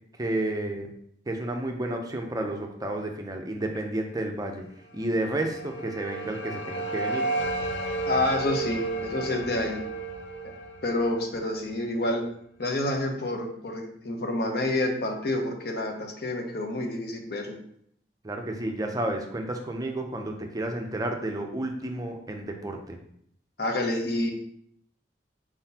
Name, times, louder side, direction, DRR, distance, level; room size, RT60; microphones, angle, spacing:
voice 1, 0.2-0.9 1.3-4.7 4.9-7.3 18.2-23.0, right 1 dB, 20° right, 3 dB, 0.5 m, -31 dB
sound 1, 5.1-12.2, right 3 dB, 90° left, 0.5 m, -33 dB
voice 2, 8.1-9.8 10.8-12.2 12.6-17.6 23.6-24.3, left 1 dB, 60° left, 3 dB, 0.8 m, -28 dB
4.8 x 3.9 x 2.8 m, 0.69 s
head